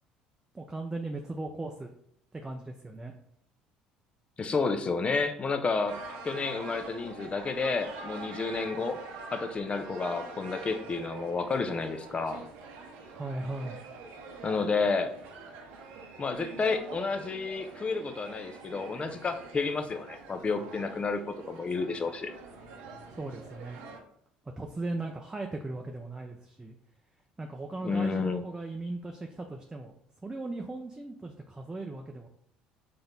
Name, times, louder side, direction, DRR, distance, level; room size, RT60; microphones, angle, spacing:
voice 1, 0.5-1.9 2.3-3.1 13.1-13.8 23.1-23.8 24.6-26.7 27.4-32.3, right 2 dB, 15° right, 2 dB, 0.6 m, -38 dB
voice 2, 4.4-6.0 6.2-9.0 9.3-12.4 14.4-15.1 16.2-21.2 21.5-22.3 27.8-28.4, left 4 dB, 30° left, 7 dB, 0.6 m, -30 dB
sound 1, 5.9-24.0, right 3 dB, 70° right, 0.8 m, -45 dB
3.9 x 3.4 x 3.9 m, 0.70 s
hypercardioid pair, 65°, 4 cm